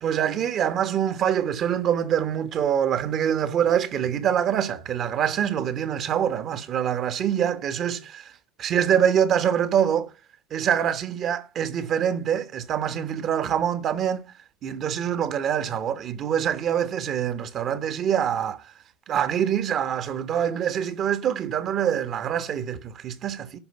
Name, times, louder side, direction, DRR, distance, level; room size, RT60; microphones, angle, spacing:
voice 1, 0.0-8.3 8.6-10.1 10.5-14.2 14.6-18.7 19.1-23.6, right 9 dB, 45° right, 1.3 m, -25 dB
12.0 x 5.0 x 8.0 m
hypercardioid pair, 70°, 0 cm